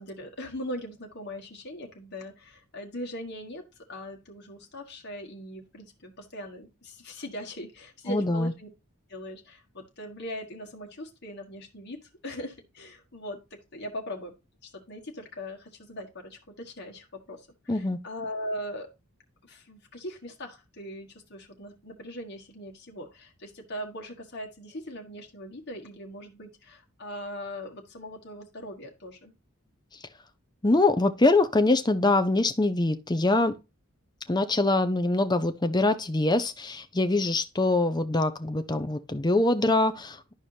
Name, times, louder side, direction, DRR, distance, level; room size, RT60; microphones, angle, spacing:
voice 1, 0.0-3.6 3.9-8.7 9.1-14.3 14.6-18.9 19.4-29.3, equal, 55° left, 1.6 m, -40 dB
voice 2, 8.1-8.5 17.7-18.0 30.6-33.6 34.3-40.3, left 2 dB, 20° left, 0.7 m, -24 dB
11.5 x 4.9 x 2.8 m
head